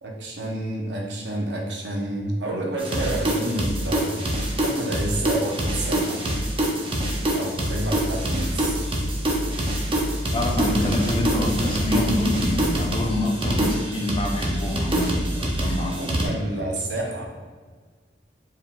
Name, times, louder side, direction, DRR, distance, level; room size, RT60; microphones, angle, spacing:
voice 1, 0.0-4.1 4.6-6.2 7.3-8.8 10.6-11.0 11.3-11.4 16.0-17.3, right 1 dB, 85° right, 0 dB, 0.8 m, -29 dB
sound 1, 2.8-16.3, right 1 dB, 30° right, 0.6 m, -25 dB
voice 2, 10.3-16.0, left 1 dB, 30° left, 1 dB, 0.5 m, -26 dB
4.5 x 3.7 x 2.3 m, 1.5 s
head